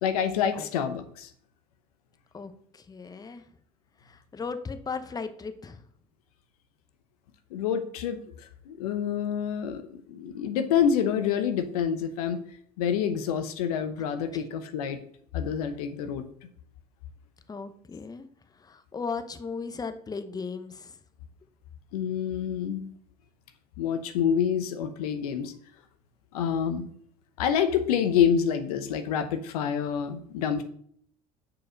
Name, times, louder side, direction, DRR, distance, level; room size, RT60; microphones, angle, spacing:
voice 1, 0.0-1.3 7.5-8.2 8.7-12.4 12.8-15.0 15.3-16.2 21.9-22.9 23.8-25.5 26.3-26.9 27.4-30.6, left 8 dB, 80° left, 8 dB, 0.9 m, -27 dB
voice 2, 2.3-3.4 4.0-5.8 14.3-14.4 17.5-18.3 18.6-21.0, left 5 dB, 20° left, 9 dB, 0.9 m, -37 dB
6.2 x 4.8 x 6.3 m, 0.63 s
hypercardioid pair, 80°, 19 cm